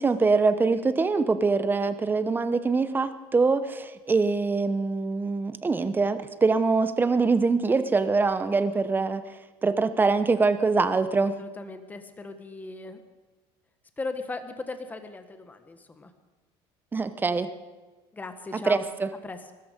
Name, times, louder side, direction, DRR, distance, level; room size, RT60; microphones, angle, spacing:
voice 1, 0.0-9.2 9.6-11.3 16.9-17.5 18.7-19.1, right 4 dB, 20° right, 12 dB, 0.9 m, -24 dB
voice 2, 11.4-13.0 14.0-16.1 18.1-18.9 19.2-19.5, left 3 dB, 15° left, 8 dB, 1.4 m, -38 dB
21.0 x 13.0 x 5.3 m, 1.3 s
cardioid pair, 125°, 11 cm